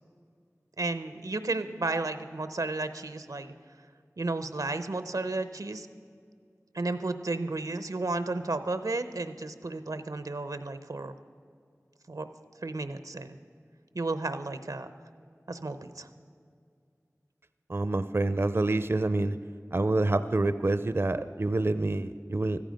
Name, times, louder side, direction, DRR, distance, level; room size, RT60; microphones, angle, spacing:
voice 1, 0.8-3.5 4.2-5.9 6.7-11.1 12.1-12.3 12.6-13.4 13.9-14.9 15.5-16.1, right 2 dB, 90° right, 11 dB, 0.7 m, -33 dB
voice 2, 17.7-19.4 19.7-22.6, right 2 dB, 45° right, 12 dB, 0.4 m, -27 dB
14.5 x 14.5 x 5.2 m, 2.2 s
wide cardioid pair, 45°, 6 cm